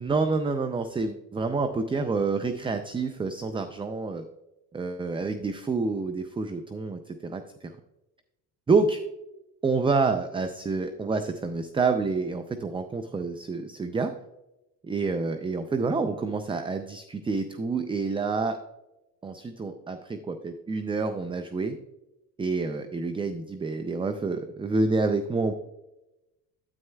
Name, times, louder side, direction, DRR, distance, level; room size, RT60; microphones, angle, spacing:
voice 1, 0.0-4.2 4.7-7.4 8.7-9.0 9.6-14.1 14.8-18.6 19.2-21.8 22.4-25.5, right 4 dB, 15° right, 9 dB, 0.3 m, -28 dB
9.6 x 8.8 x 2.2 m, 0.96 s
cardioid pair, 110°, 42 cm